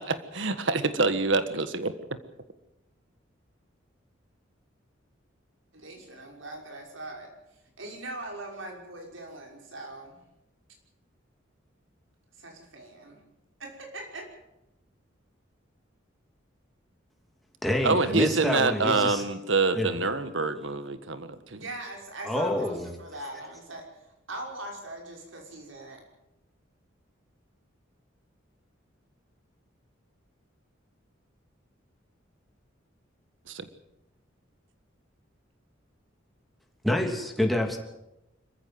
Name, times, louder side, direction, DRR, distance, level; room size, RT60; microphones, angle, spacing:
voice 1, 0.0-1.9 17.8-21.6 33.5-33.7, right 3 dB, 70° right, 11 dB, 1.6 m, -26 dB
voice 2, 5.7-7.3 7.8-10.2 12.4-13.2 13.6-14.3 21.5-23.9 24.3-26.0, right 2 dB, 90° right, 1 dB, 6.0 m, -41 dB
voice 3, 17.6-19.2 19.7-19.9 22.2-22.9 36.8-37.8, left 1 dB, ahead, 1 dB, 3.0 m, -27 dB
26.5 x 14.5 x 7.9 m, 0.90 s
head